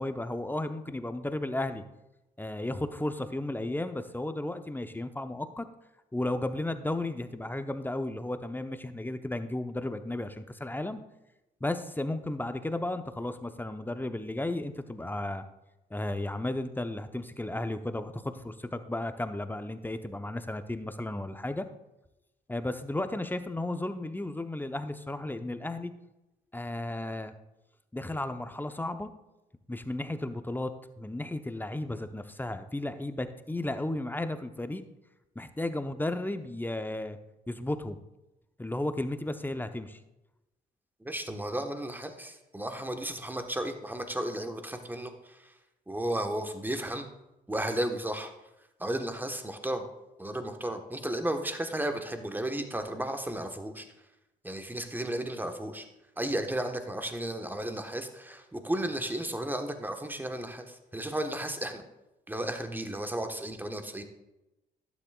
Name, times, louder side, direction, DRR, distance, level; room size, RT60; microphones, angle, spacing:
voice 1, 0.0-1.8 2.4-5.7 6.1-11.0 11.6-15.4 15.9-21.7 22.5-25.9 26.5-27.3 27.9-29.1 29.7-34.8 35.4-37.2 37.5-38.0 38.6-40.0, left 1 dB, 10° left, 9 dB, 0.8 m, -34 dB
voice 2, 41.0-45.5 45.9-47.1 47.5-48.3 48.8-49.9 50.2-53.9 54.4-55.9 56.2-61.8 62.3-64.0, right 1 dB, 10° right, 6 dB, 1.3 m, -34 dB
11.5 x 9.4 x 2.4 m, 0.95 s
hypercardioid pair, 50°, 21 cm